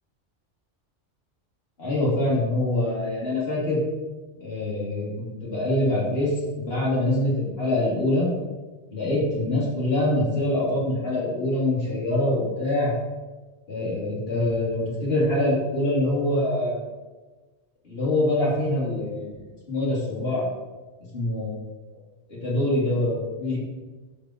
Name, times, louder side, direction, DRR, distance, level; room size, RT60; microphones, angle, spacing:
voice 1, 1.8-3.8 4.4-6.3 6.6-8.3 8.9-12.9 13.7-16.8 17.8-19.3 19.7-20.5 21.1-21.6 22.3-23.6, left 1 dB, 55° left, -7 dB, 3.1 m, -24 dB
7.2 x 5.2 x 4.4 m, 1.2 s
omnidirectional pair, 1.2 m